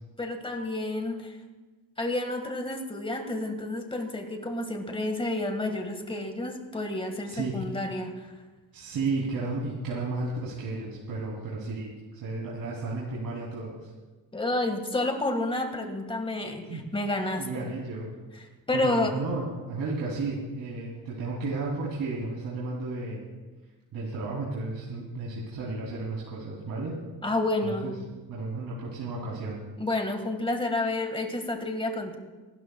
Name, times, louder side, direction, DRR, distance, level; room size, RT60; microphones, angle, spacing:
voice 1, 0.2-1.3 2.0-8.3 14.3-17.7 18.7-19.1 27.2-28.0 29.8-32.2, left 2 dB, 15° left, 5 dB, 1.7 m, -30 dB
voice 2, 7.3-7.6 8.7-13.9 16.7-16.8 17.4-18.1 18.7-23.3 23.9-27.0 27.6-27.9 28.3-29.6, right 3 dB, 70° right, -6 dB, 3.0 m, -33 dB
26.0 x 12.5 x 2.3 m, 1.2 s
cardioid pair, 120°, 35 cm